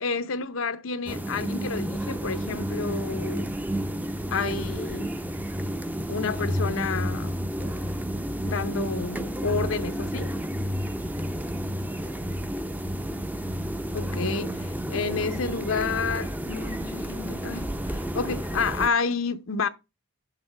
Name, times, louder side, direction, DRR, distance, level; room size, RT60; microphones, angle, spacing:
voice 1, 0.0-3.5 4.3-5.1 6.1-7.4 8.4-10.3 13.9-19.7, left 4 dB, 85° left, 0.8 m, -30 dB
sound 1, 1.1-18.9, equal, 10° right, 0.4 m, -31 dB
8.2 x 6.9 x 3.3 m
head